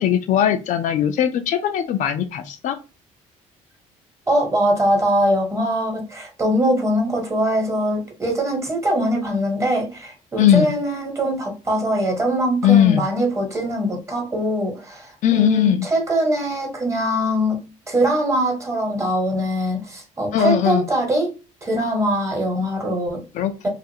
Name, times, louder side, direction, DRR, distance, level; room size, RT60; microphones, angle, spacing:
voice 1, 0.0-2.8 10.4-10.7 12.6-13.0 15.2-15.9 20.3-20.9 23.3-23.7, left 10 dB, 60° left, 0.4 m, -18 dB
voice 2, 4.3-17.6 17.9-21.3 21.6-23.2 23.6-23.7, equal, 20° right, 1.2 m, -22 dB
2.5 x 2.4 x 2.7 m
cardioid pair, 90°, 14 cm